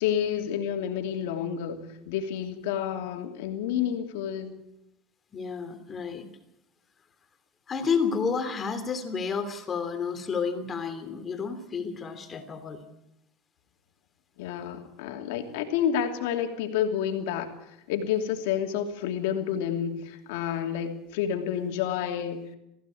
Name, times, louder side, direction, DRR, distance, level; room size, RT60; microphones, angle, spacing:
voice 1, 0.0-4.6 14.4-17.5 17.9-22.4, left 9 dB, 85° left, 4 dB, 2.9 m, -29 dB
voice 2, 5.3-6.3 7.7-12.8, left 5 dB, 30° left, 7 dB, 3.0 m, -30 dB
20.0 x 15.5 x 8.5 m, 0.85 s
supercardioid pair, 115°, 0 cm